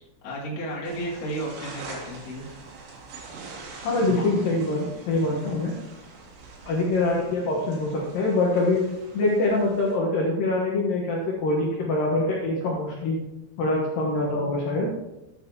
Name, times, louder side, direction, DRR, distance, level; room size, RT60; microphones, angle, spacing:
voice 1, 0.0-2.5, right 1 dB, 45° left, -5 dB, 2.7 m, -33 dB
sound 1, 0.8-10.0, right 3 dB, 80° right, 4.2 m, -44 dB
voice 2, 3.8-5.8 6.7-13.2 13.6-14.9, left 2 dB, 70° left, -3 dB, 2.2 m, -24 dB
13.0 x 8.6 x 2.9 m, 0.98 s
omnidirectional pair, 5.5 m